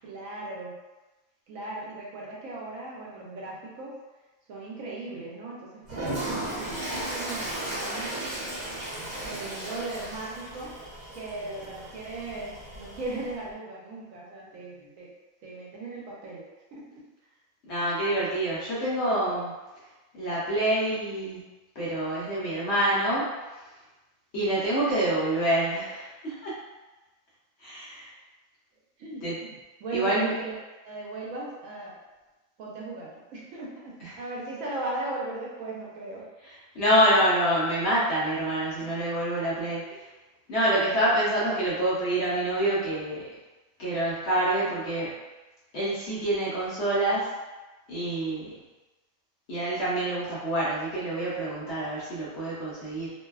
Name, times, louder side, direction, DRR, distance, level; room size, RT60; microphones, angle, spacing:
voice 1, 0.0-0.8 1.5-3.9 4.5-8.1 9.2-10.7 11.1-15.1 15.4-16.4 16.7-16.8 29.0-30.5 30.8-32.0 32.6-36.3 38.8-38.9, right 2 dB, 75° right, -4 dB, 1.0 m, -37 dB
Toilet flush, 5.8-13.4, right 1 dB, 40° right, 1.1 m, -35 dB
voice 2, 17.7-19.5 20.1-21.4 21.8-23.3 24.3-26.5 27.6-28.1 29.2-29.3 29.9-30.3 34.0-34.1 36.7-39.8 40.5-43.2 43.8-45.1 45.7-47.3 47.9-48.6 49.5-53.1, right 1 dB, 55° left, -8 dB, 0.9 m, -26 dB
2.6 x 2.2 x 2.2 m, 1.1 s
omnidirectional pair, 1.5 m